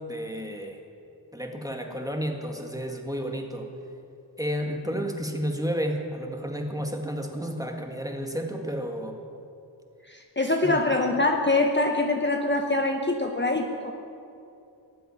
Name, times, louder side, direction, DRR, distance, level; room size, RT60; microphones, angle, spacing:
voice 1, 0.1-0.8 1.3-3.7 4.4-9.2 10.6-10.8, equal, 10° right, 3 dB, 1.8 m, -31 dB
voice 2, 10.1-13.9, left 2 dB, 25° left, 2 dB, 1.0 m, -24 dB
18.5 x 7.7 x 9.9 m, 2.7 s
wide cardioid pair, 50°, 44 cm